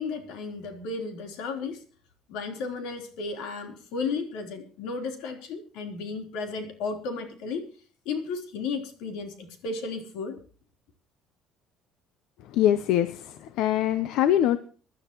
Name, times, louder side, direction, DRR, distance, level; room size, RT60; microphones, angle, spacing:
voice 1, 0.0-1.8 2.3-7.7 8.1-10.4, left 4 dB, 85° left, 5 dB, 3.9 m, -34 dB
voice 2, 12.5-14.6, left 11 dB, 65° left, 13 dB, 0.9 m, -23 dB
24.5 x 12.0 x 3.1 m, 0.40 s
cardioid pair, 175°, 0 cm